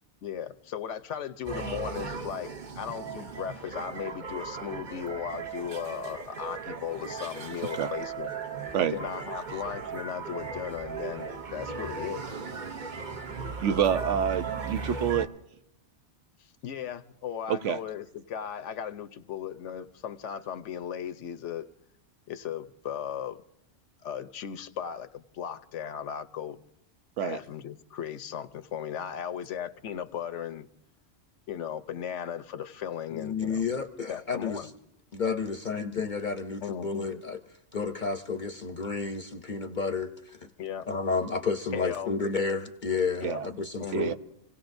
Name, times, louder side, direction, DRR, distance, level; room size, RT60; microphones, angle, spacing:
voice 1, 0.2-8.3 8.9-12.2 16.6-21.7 22.3-23.4 24.0-26.6 27.2-30.7 31.5-33.6 34.1-34.7 36.6-36.9 40.6-40.9 41.7-42.1 43.2-43.4 43.8-44.1, left 9 dB, 85° left, 1.1 m, -36 dB
sound 1, 1.4-15.3, right 5 dB, 45° right, 1.0 m, -37 dB
voice 2, 13.6-15.3 17.5-17.8 27.2-27.4 43.2-43.4 43.9-44.1, right 8 dB, 85° right, 1.1 m, -27 dB
voice 3, 33.1-34.7 35.1-37.4 37.7-40.5 40.9-44.1, left 5 dB, 50° left, 0.8 m, -31 dB
27.5 x 17.5 x 2.6 m
omnidirectional pair, 1.2 m